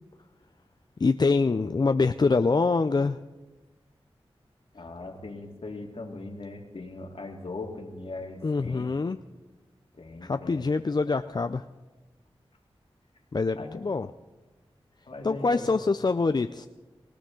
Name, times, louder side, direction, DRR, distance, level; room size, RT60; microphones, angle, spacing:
voice 1, 1.0-3.2 8.4-9.2 10.2-11.6 13.3-14.1 15.2-16.7, left 4 dB, 40° left, 9 dB, 0.4 m, -25 dB
voice 2, 4.7-8.9 10.0-10.6 13.6-13.8 15.1-15.7, left 2 dB, 65° left, 2 dB, 2.1 m, -39 dB
19.0 x 17.0 x 3.8 m, 1.2 s
cardioid pair, 40°, 11 cm